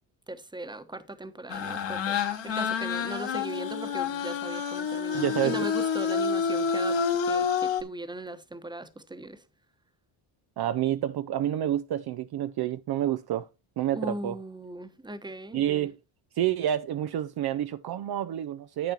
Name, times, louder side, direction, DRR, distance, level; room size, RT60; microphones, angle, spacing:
voice 1, 0.3-2.2 2.4-9.4 13.9-15.6, right 1 dB, 10° right, 1.0 m, -38 dB
sound 1, 1.5-7.8, left 6 dB, 60° left, 1.9 m, -28 dB
voice 2, 5.1-5.6 10.6-13.5 13.8-14.4 15.5-16.0 16.3-18.9, right 11 dB, 50° right, 0.5 m, -28 dB
10.5 x 8.0 x 2.9 m
cardioid pair, 75°, 49 cm